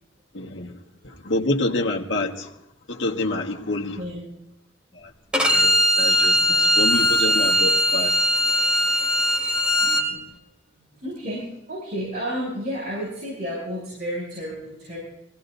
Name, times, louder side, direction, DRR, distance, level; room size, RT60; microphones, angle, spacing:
voice 1, 0.3-0.8 1.0-2.5 2.9-4.0 4.9-8.1, left 2 dB, 85° left, 1.6 m, -27 dB
voice 2, 4.0-4.3 6.4-6.7 8.5-8.9 9.8-10.2 10.8-15.0, equal, 60° right, 7.9 m, -32 dB
Bowed string instrument, 5.3-10.0, equal, 5° right, 2.5 m, -20 dB
24.0 x 17.5 x 2.7 m
head